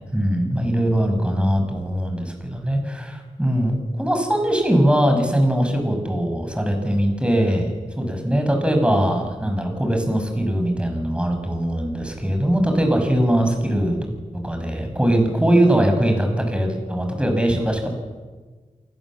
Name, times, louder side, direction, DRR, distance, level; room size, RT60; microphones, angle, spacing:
voice 1, 0.1-14.0 14.4-17.9, right 1 dB, 5° right, 4 dB, 6.2 m, -21 dB
28.5 x 18.0 x 7.5 m, 1.4 s
wide cardioid pair, 85°, 14 cm